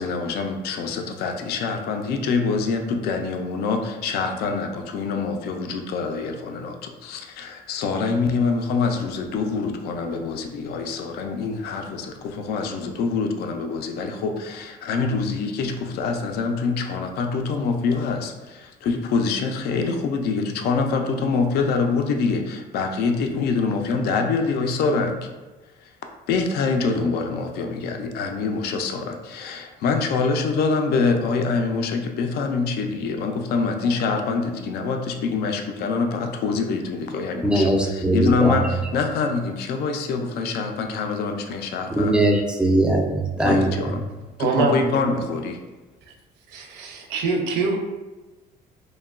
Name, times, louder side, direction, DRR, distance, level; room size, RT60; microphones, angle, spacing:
voice 1, 0.0-25.2 25.8-25.9 26.3-42.2 43.4-44.0 44.4-45.6, left 4 dB, 70° left, 4 dB, 0.4 m, -25 dB
voice 2, 37.4-38.6 42.0-43.7, right 1 dB, 5° right, 1 dB, 0.3 m, -20 dB
voice 3, 44.4-45.0 46.5-47.8, right 3 dB, 90° right, 3 dB, 0.5 m, -24 dB
2.9 x 2.1 x 2.3 m, 1.2 s
cardioid pair, 110°, 17 cm